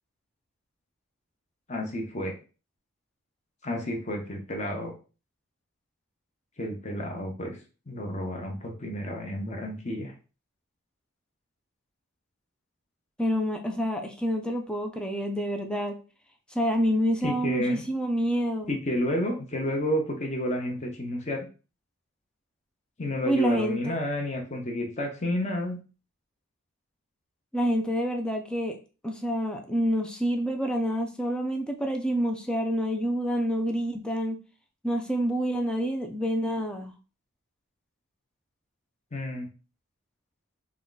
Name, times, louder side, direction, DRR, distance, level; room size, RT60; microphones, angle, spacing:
voice 1, 1.7-2.4 3.6-4.9 6.6-7.6 7.9-10.1 17.2-17.8 18.7-21.5 23.0-25.8 39.1-39.5, left 1 dB, 30° left, 2 dB, 0.8 m, -30 dB
voice 2, 13.2-16.0 16.5-18.7 23.3-24.0 27.5-28.8 29.0-34.4 34.8-36.9, equal, 5° left, 3 dB, 0.4 m, -27 dB
3.7 x 2.2 x 3.9 m, 0.34 s
head